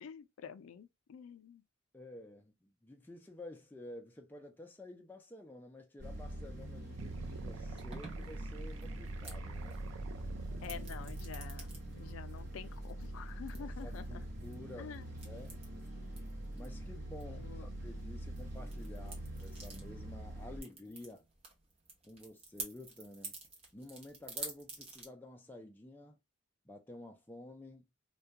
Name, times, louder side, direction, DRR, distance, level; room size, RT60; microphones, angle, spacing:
voice 1, 0.0-1.6 10.6-14.0 14.8-15.0 17.3-17.7, left 7 dB, 85° left, 0.4 m, -48 dB
voice 2, 1.9-9.8 10.5-10.8 13.6-15.6 16.5-21.3 22.0-23.3 23.7-26.2 26.7-27.8, left 1 dB, 10° left, 0.3 m, -51 dB
sound 1, 6.0-20.6, right 1 dB, 65° right, 0.9 m, -44 dB
sound 2, 7.0-12.0, right 3 dB, 85° right, 0.4 m, -47 dB
sound 3, 7.8-25.1, right 3 dB, 30° right, 0.6 m, -51 dB
2.2 x 2.2 x 2.7 m
head